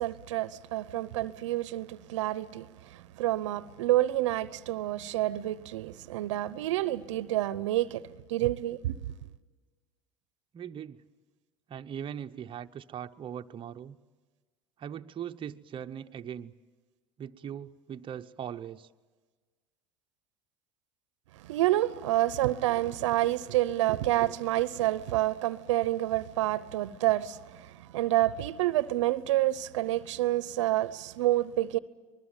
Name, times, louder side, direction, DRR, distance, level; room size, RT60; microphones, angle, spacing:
voice 1, 0.0-8.9 21.4-31.8, right 15 dB, 80° right, 0.8 m, -28 dB
voice 2, 10.5-11.0 11.7-14.0 14.8-16.5 17.2-18.9, right 9 dB, 35° right, 0.9 m, -40 dB
25.0 x 20.0 x 9.0 m
hypercardioid pair, 85°, 15 cm